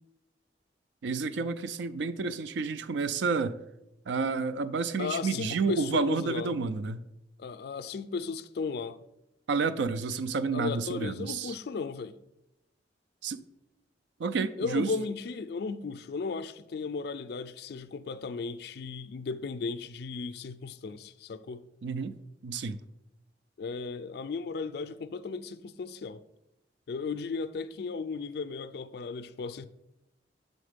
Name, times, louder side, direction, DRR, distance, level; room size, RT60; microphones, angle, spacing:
voice 1, 1.0-3.6 4.1-7.0 9.5-11.5 13.2-13.4 14.2-14.9 21.8-22.1 22.4-22.8, right 4 dB, 80° right, 0.4 m, -30 dB
voice 2, 5.0-6.6 7.4-9.0 10.5-12.2 14.6-21.6 23.6-26.2 26.9-29.7, left 4 dB, 60° left, 0.4 m, -35 dB
6.3 x 4.0 x 5.1 m
head